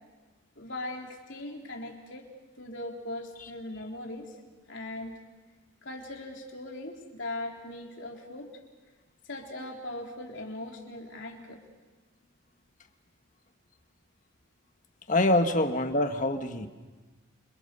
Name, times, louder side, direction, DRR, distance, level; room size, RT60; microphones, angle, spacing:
voice 1, 0.6-2.3 2.6-4.3 4.7-5.1 5.8-8.5 9.2-11.6, left 1 dB, 55° left, 0 dB, 4.0 m, -39 dB
voice 2, 15.1-16.7, left 1 dB, 40° left, 6 dB, 1.7 m, -25 dB
28.5 x 27.5 x 7.0 m, 1.3 s
head